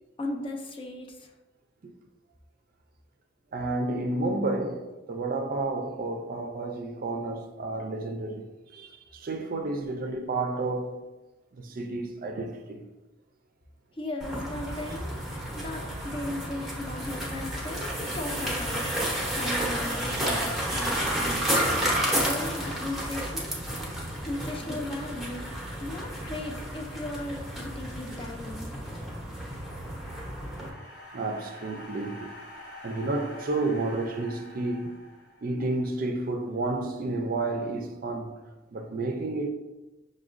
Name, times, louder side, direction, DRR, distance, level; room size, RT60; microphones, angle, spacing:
voice 1, 0.2-1.3 14.0-18.8 19.3-21.3 21.5-23.6 24.3-25.5 25.8-28.8, left 2 dB, 30° left, 0.4 m, -37 dB
voice 2, 3.5-11.0 11.5-12.8 19.9-21.0 31.1-32.3 32.8-35.0 35.4-38.4 38.7-39.5, right 2 dB, 50° right, 0.4 m, -31 dB
sound 1, 14.2-30.7, right 1 dB, ahead, 0.7 m, -31 dB
sound 2, 29.5-35.7, left 1 dB, 60° left, 1.1 m, -46 dB
5.8 x 2.2 x 2.4 m
head